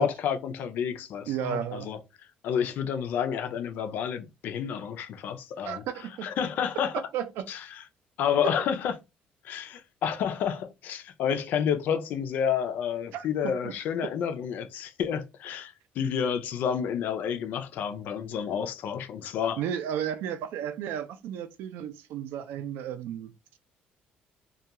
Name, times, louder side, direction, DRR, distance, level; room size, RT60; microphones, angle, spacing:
voice 1, 0.0-2.0 2.4-5.8 6.2-6.9 7.5-7.8 8.2-8.9 9.4-19.6, left 8 dB, 65° left, 0.4 m, -30 dB
voice 2, 1.3-1.9 5.6-6.3 7.1-7.4 8.4-8.5 13.1-13.7 19.6-23.3, right 9 dB, 90° right, 0.4 m, -33 dB
2.3 x 2.2 x 2.8 m
cardioid pair, 150°, 3 cm